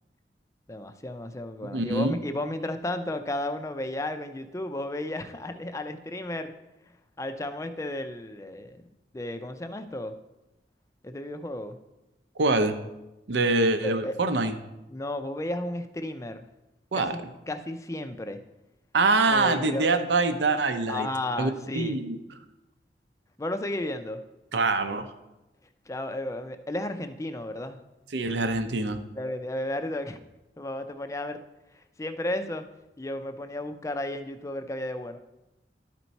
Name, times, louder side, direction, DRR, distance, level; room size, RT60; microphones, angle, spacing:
voice 1, 0.7-6.5 7.2-8.8 9.1-10.1 11.0-11.8 13.8-14.2 14.9-16.5 16.9-17.2 17.5-18.4 19.3-20.0 20.9-22.0 23.4-24.2 25.9-27.8 29.2-30.2 30.6-31.4 32.0-32.6 33.0-35.2, left 1 dB, 15° left, 8 dB, 0.4 m, -33 dB
voice 2, 1.7-2.2 12.4-12.8 13.3-14.6 16.9-17.1 18.9-21.1 21.4-22.2 24.5-25.1 28.1-29.0, right 3 dB, 90° right, 8 dB, 0.7 m, -24 dB
12.0 x 4.5 x 4.1 m, 0.98 s
head